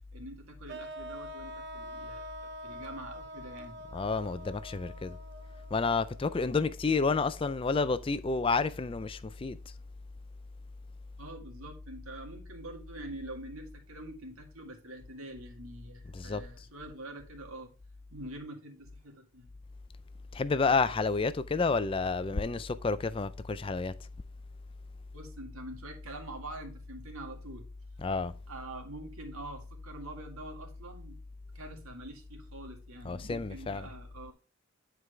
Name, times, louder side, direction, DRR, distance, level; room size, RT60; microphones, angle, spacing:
voice 1, 0.1-3.8 11.2-17.7 18.1-19.5 25.1-27.7 28.5-31.2 31.5-34.3, right 1 dB, 80° right, 1.9 m, -45 dB
sound 1, 0.7-6.7, equal, 50° right, 0.6 m, -45 dB
voice 2, 3.9-5.2 5.7-9.6 16.1-16.4 20.3-23.9 28.0-28.3 33.0-33.9, left 4 dB, 25° left, 0.3 m, -30 dB
9.6 x 4.7 x 3.3 m
head